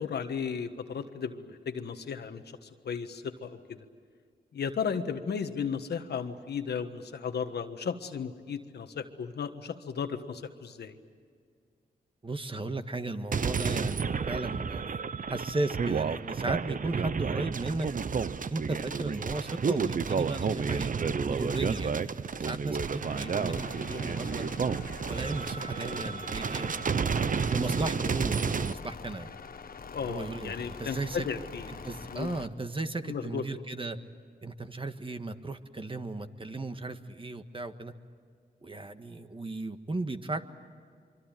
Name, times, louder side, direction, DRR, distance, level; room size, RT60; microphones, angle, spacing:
voice 1, 0.0-3.8 4.5-11.0 29.9-31.7 32.1-32.4 33.0-33.4, left 6 dB, 85° left, 7 dB, 1.5 m, -35 dB
voice 2, 12.2-15.0 15.3-17.9 18.5-20.9 21.3-24.5 25.1-26.7 27.5-29.3 30.0-31.3 31.8-34.0 34.4-37.9 38.6-40.4, right 2 dB, 30° right, 8 dB, 1.6 m, -35 dB
sound 1, 13.3-28.7, right 5 dB, 55° right, 0.8 m, -31 dB
sound 2, 23.0-32.5, left 5 dB, 65° left, 1.4 m, -45 dB
24.5 x 24.0 x 9.1 m, 2.1 s
cardioid pair, 60°, 17 cm